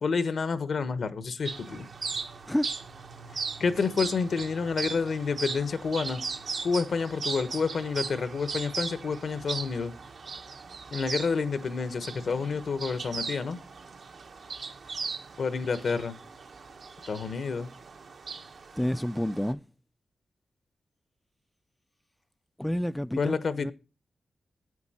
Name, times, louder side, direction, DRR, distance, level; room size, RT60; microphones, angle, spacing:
voice 1, 0.0-1.9 3.6-6.2 6.6-9.9 10.9-13.6 15.4-16.1 17.1-17.7 23.2-23.7, left 5 dB, 70° left, 1.1 m, -29 dB
sound 1, 1.4-19.5, right 4 dB, 70° right, 1.2 m, -38 dB
voice 2, 18.8-19.6 22.6-23.7, equal, 5° left, 0.4 m, -29 dB
9.7 x 8.5 x 4.2 m
cardioid pair, 50°, 0 cm